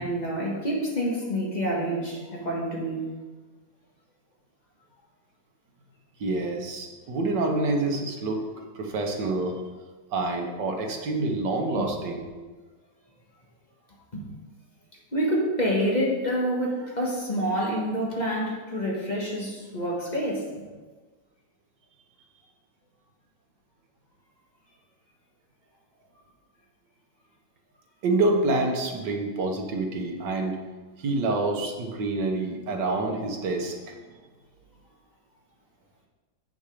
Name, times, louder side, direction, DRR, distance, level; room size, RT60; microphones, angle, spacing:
voice 1, 0.0-3.0 11.8-11.9 14.1-14.2 15.1-20.5, equal, 25° left, -4 dB, 1.8 m, -27 dB
voice 2, 6.2-8.4 8.7-9.6 10.1-12.3 28.0-30.6 31.0-33.9, right 2 dB, 85° right, 2 dB, 1.8 m, -27 dB
8.5 x 6.3 x 4.9 m, 1.3 s
omnidirectional pair, 1.8 m